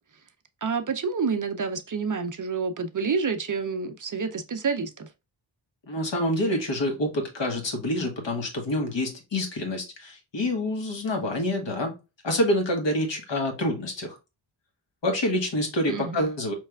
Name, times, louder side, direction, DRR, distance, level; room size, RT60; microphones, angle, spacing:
voice 1, 0.6-5.1 15.9-16.3, right 5 dB, 40° right, 0.5 m, -28 dB
voice 2, 5.9-11.9 12.2-14.2 15.0-16.5, left 1 dB, 60° left, 1.4 m, -27 dB
4.6 x 3.2 x 2.3 m
wide cardioid pair, 135°, 48 cm